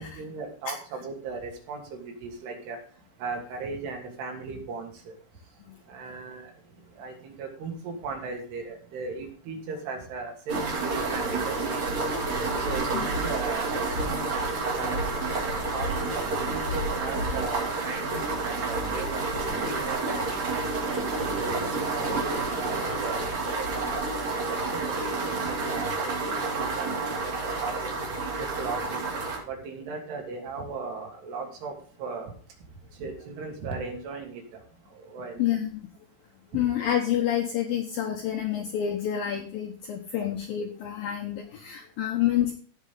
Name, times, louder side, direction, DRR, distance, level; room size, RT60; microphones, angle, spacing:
voice 1, 0.0-2.8 3.2-5.1 5.9-6.5 7.0-12.0 12.6-15.0 15.7-16.1 16.5-19.2 19.7-20.6 21.4-27.3 27.6-28.0 28.4-29.0 29.5-31.7 32.0-32.3 33.0-34.4 35.0-35.4 36.5-36.7 40.2-40.3, right 4 dB, 60° right, 1 dB, 4.6 m, -37 dB
sound 1, 10.5-29.4, right 3 dB, 40° right, 3.7 m, -29 dB
voice 2, 35.4-35.8 36.5-42.5, left 10 dB, 80° left, 3 dB, 2.0 m, -28 dB
16.5 x 6.6 x 3.8 m, 0.43 s
omnidirectional pair, 5.7 m